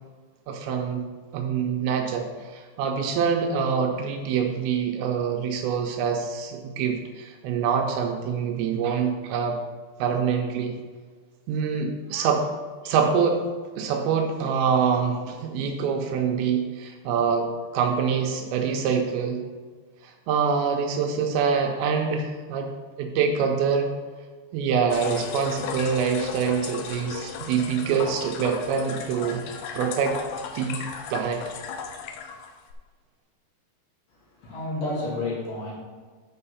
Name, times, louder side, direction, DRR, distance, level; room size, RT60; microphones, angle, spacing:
voice 1, 0.5-1.0 1.3-9.6 10.0-10.8 11.5-12.5 12.8-13.4 13.8-17.5 17.7-19.4 20.0-22.7 23.0-23.9 24.5-29.4 29.7-30.2 30.6-30.9 31.1-31.4, right 6 dB, 80° right, 3 dB, 2.8 m, -25 dB
sound 1, 24.9-32.7, left 6 dB, 85° left, 2.5 m, -35 dB
voice 2, 34.4-35.7, left 2 dB, 65° left, -6 dB, 4.3 m, -30 dB
9.4 x 4.7 x 5.6 m, 1.5 s
omnidirectional pair, 5.3 m